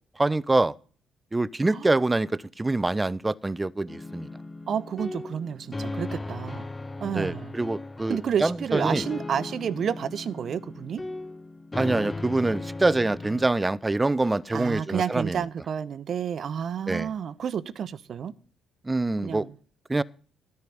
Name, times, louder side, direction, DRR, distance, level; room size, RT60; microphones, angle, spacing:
voice 1, 0.2-0.7 1.3-4.3 7.0-9.0 11.8-15.4 16.9-17.1 18.8-19.5 19.9-20.0, right 2 dB, 20° right, 0.6 m, -25 dB
sound 1, 3.9-13.5, left 2 dB, 25° left, 0.8 m, -37 dB
voice 2, 4.7-6.7 7.0-7.5 8.1-11.0 14.5-18.3 19.2-19.5, right 8 dB, 50° right, 0.8 m, -30 dB
13.5 x 5.7 x 9.4 m
figure-of-eight pair, 45°, 0 cm